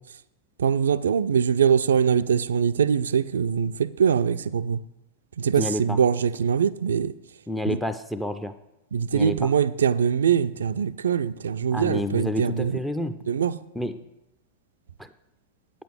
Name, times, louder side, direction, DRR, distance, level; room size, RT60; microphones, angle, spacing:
voice 1, 0.6-4.8 5.4-7.1 8.9-12.7 13.3-13.5, right 7 dB, 65° right, 0.3 m, -23 dB
voice 2, 5.6-6.0 7.5-8.6 9.1-9.5 11.7-13.2 13.7-14.1 15.0-15.1, left 1 dB, ahead, 0.5 m, -29 dB
8.8 x 7.6 x 5.2 m
figure-of-eight pair, 90°, 0 cm